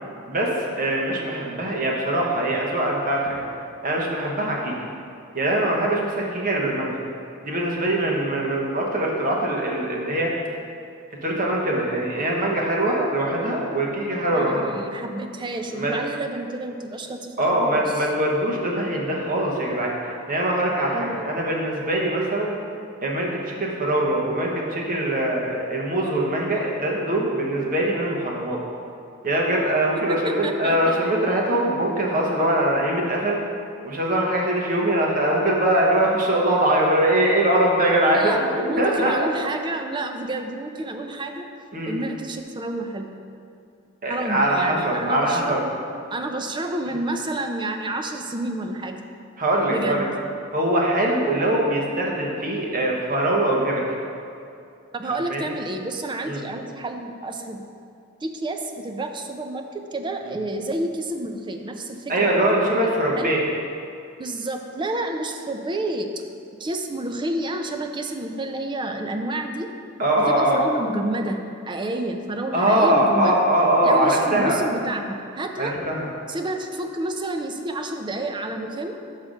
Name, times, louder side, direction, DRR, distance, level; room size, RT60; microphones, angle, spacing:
voice 1, 0.3-3.4 3.8-4.7 5.3-7.0 7.4-10.3 11.2-14.7 15.7-15.9 17.4-22.5 23.0-28.6 29.2-33.4 33.8-38.3 38.8-39.1 41.7-41.9 44.0-45.6 49.4-50.1 50.5-53.8 55.3-55.4 56.2-56.4 62.1-63.4 70.0-70.6 72.5-74.6 75.6-76.0, right 1 dB, 40° right, -2 dB, 1.1 m, -22 dB
voice 2, 14.3-18.1 20.9-21.3 30.1-31.0 38.1-41.5 41.9-43.1 44.1-45.7 46.1-49.0 49.7-50.1 54.9-57.6 58.2-63.3 64.2-66.1 66.6-69.7 70.3-73.3 73.8-75.8 76.3-79.0, right 2 dB, 20° right, 5 dB, 0.4 m, -29 dB
6.0 x 5.6 x 5.1 m, 2.5 s
head